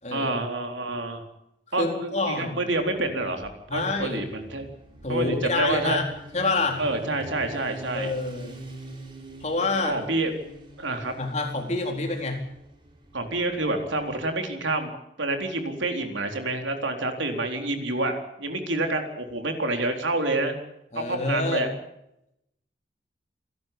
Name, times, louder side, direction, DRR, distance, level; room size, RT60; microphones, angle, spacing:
voice 1, 0.1-1.3 1.7-4.7 5.1-6.0 6.8-8.1 9.8-10.3 10.8-11.1 13.1-20.6 21.0-21.7, right 2 dB, 80° right, 5 dB, 4.0 m, -28 dB
voice 2, 1.8-2.6 3.7-4.2 5.0-6.0 6.3-6.8 7.9-8.6 9.4-10.0 11.2-12.4 20.9-21.6, left 3 dB, 35° left, 2 dB, 4.0 m, -27 dB
Motorcycle, 2.7-14.4, right 2 dB, 25° right, 3.8 m, -45 dB
28.0 x 12.0 x 8.6 m, 0.82 s
head